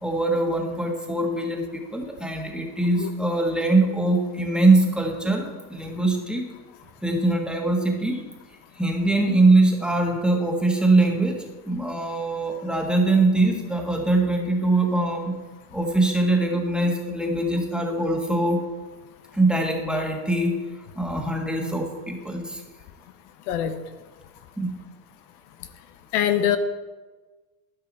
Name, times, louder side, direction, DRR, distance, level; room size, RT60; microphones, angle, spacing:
voice 1, 0.0-6.4 7.0-8.2 8.8-15.3 15.7-18.6 19.3-20.6 20.9-22.6 24.6-24.7, right 2 dB, ahead, 1 dB, 1.6 m, -22 dB
voice 2, 26.1-26.6, left 10 dB, 80° left, 9 dB, 0.9 m, -22 dB
12.5 x 5.5 x 4.2 m, 1.3 s
supercardioid pair, 100°, 45 cm